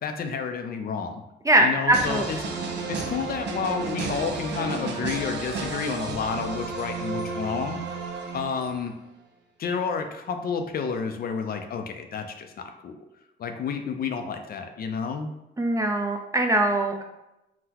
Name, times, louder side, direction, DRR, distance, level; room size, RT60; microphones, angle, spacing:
voice 1, 0.0-1.2 1.6-2.4 2.9-7.8 8.3-8.9 9.6-13.0 13.4-15.3, left 5 dB, 50° left, 6 dB, 0.4 m, -30 dB
voice 2, 1.4-2.2 15.6-17.0, right 1 dB, 15° right, 2 dB, 0.4 m, -22 dB
sound 1, 1.9-8.9, right 4 dB, 60° right, 0.5 m, -32 dB
3.8 x 2.1 x 2.8 m, 0.92 s
cardioid pair, 90°, 20 cm